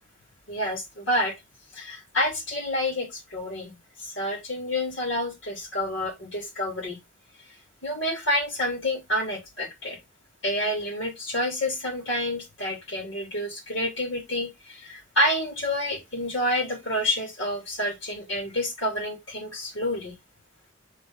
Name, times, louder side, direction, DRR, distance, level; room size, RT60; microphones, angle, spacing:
voice 1, 0.5-1.4 1.7-3.7 4.0-7.0 7.8-10.0 10.4-20.1, left 1 dB, 70° left, 3.0 m, -28 dB
5.2 x 5.0 x 3.6 m
head